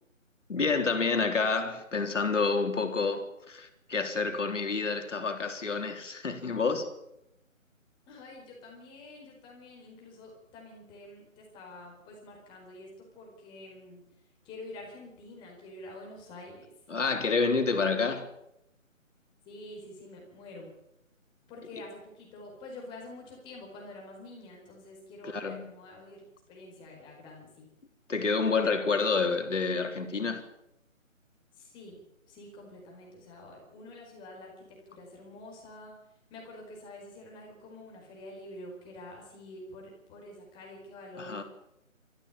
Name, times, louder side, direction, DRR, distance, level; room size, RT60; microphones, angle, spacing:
voice 1, 0.5-6.9 16.9-18.3 21.7-21.8 25.2-25.7 28.1-30.4 41.2-41.4, left 4 dB, 65° left, 3.7 m, -28 dB
voice 2, 8.1-14.0 14.4-16.7 19.5-20.7 21.5-27.7 31.6-32.0 32.3-35.9 36.3-41.4, left 2 dB, 10° left, 4.6 m, -47 dB
24.0 x 14.5 x 9.0 m
figure-of-eight pair, 155°, 40 cm